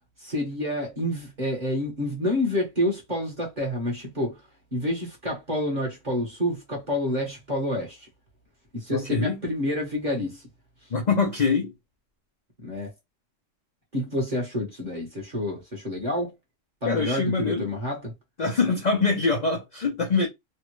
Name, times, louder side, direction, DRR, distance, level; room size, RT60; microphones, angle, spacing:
voice 1, 0.2-4.4 4.7-8.1 8.7-10.4 12.6-12.9 13.9-16.3 16.8-18.1, left 1 dB, 35° right, 1.3 m, -28 dB
voice 2, 8.9-9.4 10.9-11.7 16.9-17.7 18.4-20.3, left 4 dB, 45° left, 0.7 m, -24 dB
3.3 x 2.4 x 3.0 m
omnidirectional pair, 1.4 m